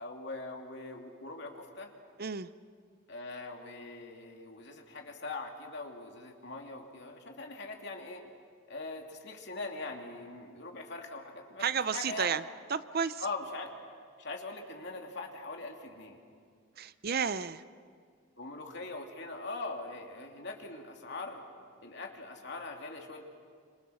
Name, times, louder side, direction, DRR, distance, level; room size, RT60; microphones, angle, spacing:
voice 1, 0.0-1.9 3.1-8.2 8.7-11.7 11.9-12.3 13.2-13.7 14.2-16.2 18.4-21.4 21.8-23.2, left 3 dB, 55° left, 2 dB, 2.8 m, -42 dB
voice 2, 11.6-12.4 12.7-13.2 16.8-17.6, right 6 dB, 50° right, 14 dB, 0.6 m, -32 dB
27.0 x 26.5 x 6.4 m, 2.1 s
head